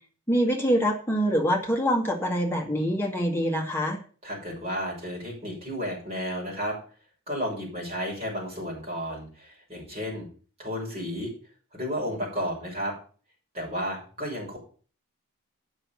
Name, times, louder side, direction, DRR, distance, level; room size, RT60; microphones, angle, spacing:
voice 1, 0.3-4.0, equal, 10° left, 0 dB, 1.9 m, -25 dB
voice 2, 4.2-6.8 7.3-10.3 10.6-11.3 11.7-12.9 13.5-14.6, equal, 30° right, -4 dB, 6.4 m, -32 dB
8.7 x 6.4 x 7.0 m, 0.40 s
head